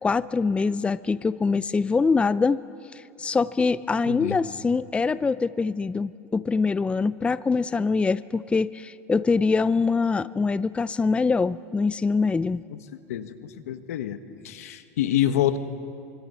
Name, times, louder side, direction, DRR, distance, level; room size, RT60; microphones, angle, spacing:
voice 1, 0.0-2.6 2.9-12.6, left 4 dB, 15° left, 16 dB, 0.5 m, -24 dB
voice 2, 4.1-4.4 13.1-14.2 14.4-15.6, left 12 dB, 85° left, 9 dB, 1.6 m, -26 dB
27.0 x 25.5 x 7.0 m, 2.6 s
supercardioid pair, 110°, 8 cm